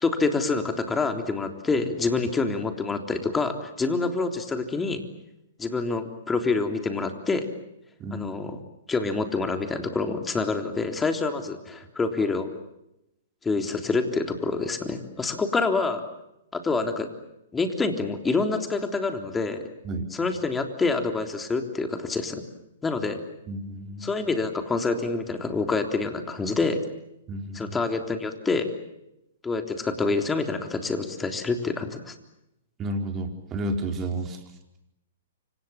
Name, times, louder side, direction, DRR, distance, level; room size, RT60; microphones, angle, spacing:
voice 1, 0.0-5.0 5.6-7.5 8.1-8.6 8.9-12.5 13.4-16.0 16.5-17.1 17.5-19.6 20.1-22.4 22.8-23.2 24.0-26.8 27.5-28.7 29.4-32.1, left 3 dB, 10° left, 6 dB, 3.5 m, -27 dB
voice 2, 8.0-8.3 19.8-20.1 23.5-24.1 27.3-27.8 32.8-34.4, right 1 dB, 25° right, 4 dB, 4.9 m, -31 dB
29.5 x 26.0 x 7.3 m, 0.85 s
hypercardioid pair, 125°, 0 cm